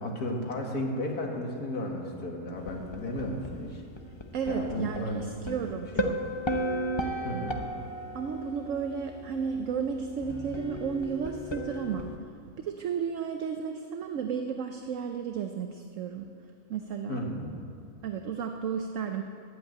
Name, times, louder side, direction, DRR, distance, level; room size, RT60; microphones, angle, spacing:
voice 1, 0.0-3.8 4.5-5.8 7.2-7.6 17.1-17.5, left 1 dB, 85° left, 0 dB, 2.3 m, -34 dB
sound 1, 2.6-12.2, equal, 30° left, 0.5 m, -35 dB
voice 2, 4.3-6.2 7.3-7.5 8.1-12.1 12.6-16.3 16.7-17.2 18.0-19.2, right 6 dB, 65° right, 5 dB, 1.0 m, -33 dB
12.5 x 8.6 x 9.0 m, 2.5 s
omnidirectional pair, 1.6 m